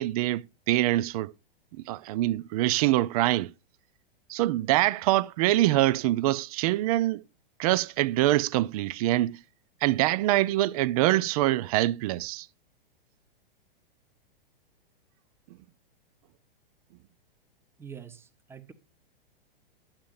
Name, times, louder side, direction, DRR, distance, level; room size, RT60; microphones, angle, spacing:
voice 1, 0.0-1.3 1.7-3.5 4.3-7.2 7.6-9.4 9.8-12.5, right 16 dB, 40° right, 0.5 m, -25 dB
voice 2, 17.8-18.7, right 7 dB, 10° right, 0.8 m, -45 dB
11.5 x 7.3 x 2.5 m
hypercardioid pair, 115°, 29 cm